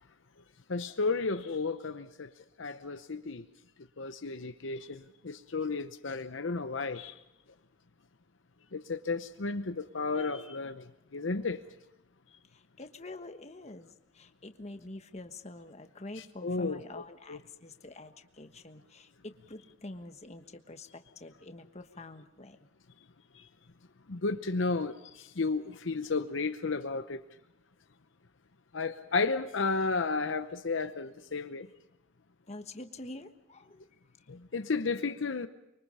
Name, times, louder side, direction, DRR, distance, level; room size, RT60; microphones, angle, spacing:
voice 1, 0.7-2.3 2.6-3.4 4.0-7.1 8.7-10.8 11.1-11.6 16.4-16.8 17.3-17.4 24.1-27.2 28.7-31.7 34.3-35.5, left 4 dB, 65° left, 9 dB, 0.8 m, -33 dB
voice 2, 12.4-22.7 32.5-33.8, left 2 dB, 30° left, 7 dB, 1.3 m, -46 dB
24.5 x 23.5 x 5.6 m, 0.93 s
head